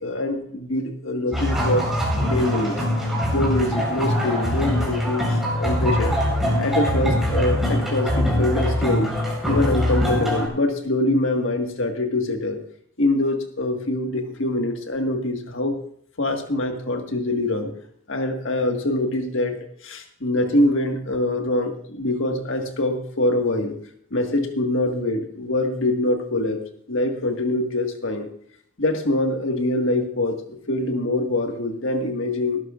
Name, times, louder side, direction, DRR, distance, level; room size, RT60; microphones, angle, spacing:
voice 1, 0.0-1.9 2.3-2.8 3.3-6.2 6.6-9.2 9.5-12.6 13.0-15.8 16.2-17.7 18.1-19.6 19.8-23.8 24.1-26.6 26.9-28.3 28.8-32.6, left 1 dB, 60° left, 4 dB, 1.7 m, -24 dB
sound 1, 1.3-10.5, left 1 dB, ahead, 4.5 m, -23 dB
19.0 x 12.5 x 2.5 m, 0.63 s
head